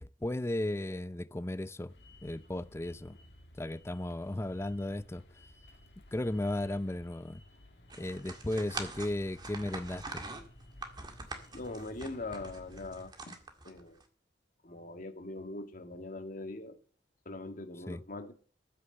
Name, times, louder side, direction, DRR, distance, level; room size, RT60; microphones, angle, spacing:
voice 1, 0.0-1.9 2.2-3.2 3.6-5.2 6.1-7.4 8.0-10.2 17.9-18.0, left 1 dB, 15° left, 0.5 m, -35 dB
sound 1, 1.9-13.1, left 1 dB, 65° left, 2.2 m, -56 dB
sound 2, 7.9-14.0, right 3 dB, 25° right, 1.9 m, -44 dB
voice 2, 11.5-13.3 13.6-14.0 14.6-16.8 17.3-18.3, left 2 dB, 50° left, 2.0 m, -42 dB
14.0 x 6.8 x 7.9 m
head